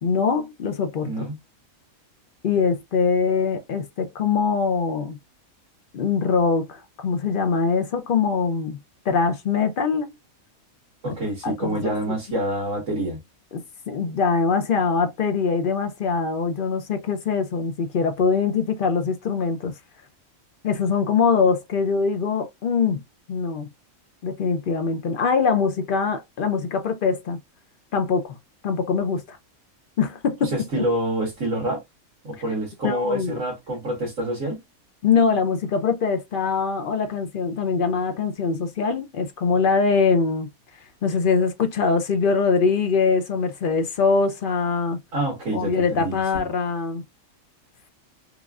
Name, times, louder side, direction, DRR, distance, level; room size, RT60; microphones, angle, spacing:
voice 1, 0.0-1.3 2.4-5.2 5.9-8.8 9.1-10.1 11.4-12.1 13.5-19.7 20.6-23.0 23.3-23.7 24.2-27.4 27.9-28.4 28.6-29.4 30.0-30.5 32.8-33.4 35.0-40.5 41.0-45.0 45.5-47.0, left 5 dB, 60° left, 0.5 m, -23 dB
voice 2, 1.0-1.4 11.0-13.2 30.4-31.8 32.2-34.6 45.1-46.4, right 1 dB, 65° right, 1.9 m, -27 dB
4.7 x 2.5 x 2.3 m
omnidirectional pair, 1.5 m